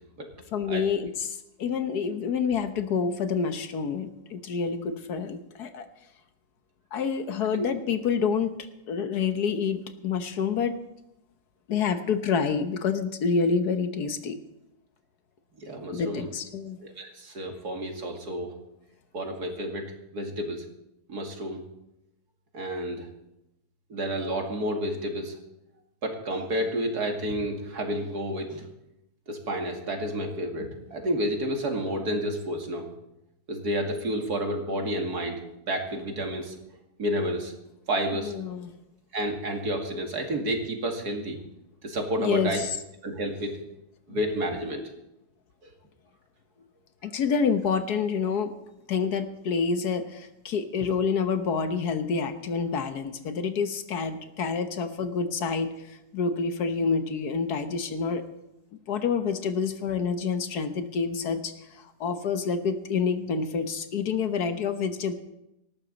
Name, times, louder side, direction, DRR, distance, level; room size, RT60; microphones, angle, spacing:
voice 1, 0.5-5.9 6.9-8.6 8.9-10.8 11.7-14.4 15.9-16.8 38.2-38.7 42.2-42.7 44.1-44.2 47.0-48.5 48.9-58.2 58.9-65.1, left 5 dB, 75° left, 9 dB, 1.6 m, -28 dB
voice 2, 15.6-16.3 16.8-18.5 19.1-20.6 21.1-21.6 22.5-23.1 23.9-25.3 26.0-28.6 29.3-32.9 33.5-35.4 35.7-36.5 37.0-37.5 37.9-38.3 39.1-41.4 41.8-42.6 43.0-43.6 44.1-44.8 45.6-45.7, equal, 75° right, 2 dB, 2.8 m, -30 dB
19.0 x 14.0 x 4.1 m, 0.86 s
omnidirectional pair, 1.7 m